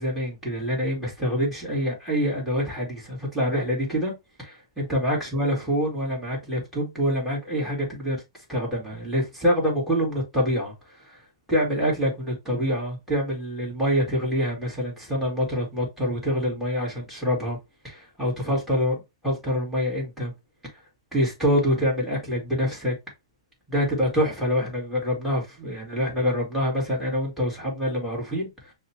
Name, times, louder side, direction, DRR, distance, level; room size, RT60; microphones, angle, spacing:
voice 1, 0.0-8.2 8.5-11.2 11.5-17.6 17.8-19.0 19.2-20.3 21.1-22.9 23.7-28.7, equal, ahead, 2.0 m, -26 dB
6.2 x 2.3 x 2.8 m
hypercardioid pair, 150°, 3 cm